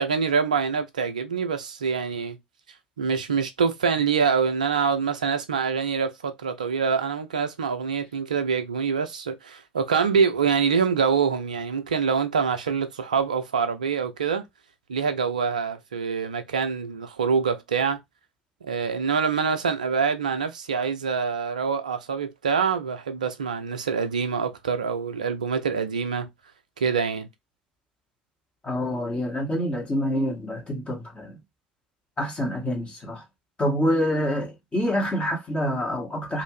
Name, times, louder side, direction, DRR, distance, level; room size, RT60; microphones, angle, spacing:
voice 1, 0.0-2.4 3.0-14.4 14.9-18.0 18.6-26.3 26.8-27.3, right 6 dB, 75° right, 0.4 m, -25 dB
voice 2, 28.6-31.4 32.2-33.2 33.6-36.4, equal, 25° left, 1.4 m, -26 dB
2.6 x 2.5 x 3.2 m
figure-of-eight pair, 60°, 4 cm